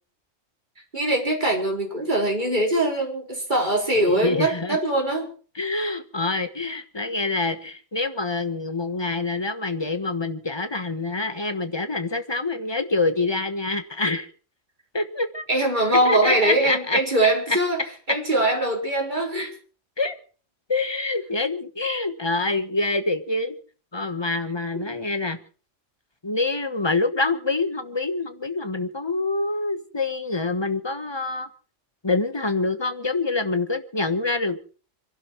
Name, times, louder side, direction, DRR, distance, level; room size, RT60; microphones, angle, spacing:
voice 1, 0.9-5.3 15.5-17.8 18.1-19.5 24.7-24.8, right 1 dB, 40° right, 1 dB, 4.3 m, -22 dB
voice 2, 4.2-4.8 5.5-14.3 14.9-15.4 16.0-17.0 20.0-20.2 20.7-23.6 23.9-25.4 26.2-31.5 32.0-34.8, left 3 dB, 20° left, 10 dB, 1.3 m, -26 dB
26.0 x 11.5 x 4.5 m, 0.40 s
omnidirectional pair, 1.3 m